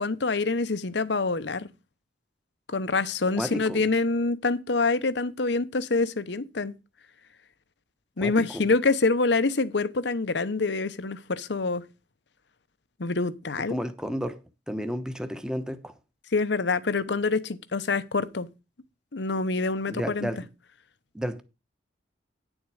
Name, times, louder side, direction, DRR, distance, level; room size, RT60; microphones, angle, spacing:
voice 1, 0.0-1.7 2.7-6.7 8.2-11.8 13.0-13.8 16.3-18.5 19.1-20.3, left 3 dB, 65° left, 0.8 m, -26 dB
voice 2, 3.4-3.8 8.2-8.6 13.7-14.4 14.7-15.9 19.9-20.4 21.1-21.4, equal, 5° right, 1.0 m, -32 dB
10.0 x 7.3 x 4.8 m
head